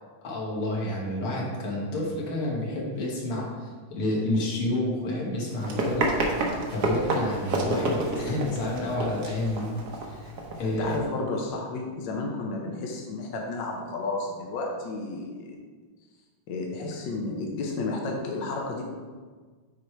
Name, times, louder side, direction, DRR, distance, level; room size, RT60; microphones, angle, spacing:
voice 1, 0.2-6.2 6.7-9.7 10.1-10.3 10.6-10.9, left 1 dB, 85° left, -2 dB, 2.3 m, -29 dB
Run, 5.5-11.0, right 2 dB, 55° right, 1.3 m, -29 dB
voice 2, 10.6-15.5 16.5-18.8, left 3 dB, 65° left, 0 dB, 1.5 m, -32 dB
6.6 x 4.8 x 4.4 m, 1.5 s
omnidirectional pair, 2.3 m